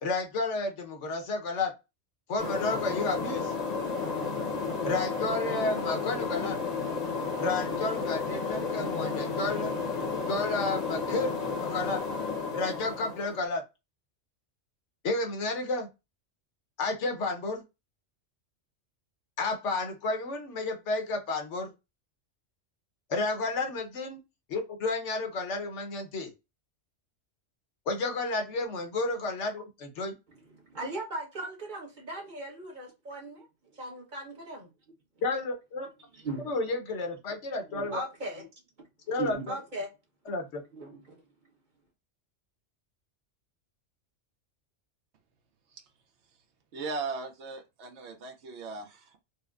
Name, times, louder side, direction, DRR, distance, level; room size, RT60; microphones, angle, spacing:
voice 1, 0.0-1.7 2.3-3.5 4.8-6.6 7.4-9.7 10.3-11.4 11.6-12.0 12.5-13.6 15.0-15.9 16.8-17.6 19.4-21.7 23.1-24.2 24.5-26.3 27.9-30.2 35.2-35.9 36.4-38.0 39.1-39.4 40.3-40.6, left 3 dB, 75° left, 1.1 m, -31 dB
sound 1, 2.4-13.4, left 4 dB, 40° left, 0.8 m, -32 dB
voice 2, 30.5-33.5 33.7-34.7 36.1-36.5 37.7-38.4 39.2-39.9 40.7-41.2, right 2 dB, 40° right, 1.1 m, -38 dB
voice 3, 46.7-49.2, right 4 dB, 70° right, 0.9 m, -38 dB
4.2 x 2.1 x 2.3 m
omnidirectional pair, 1.2 m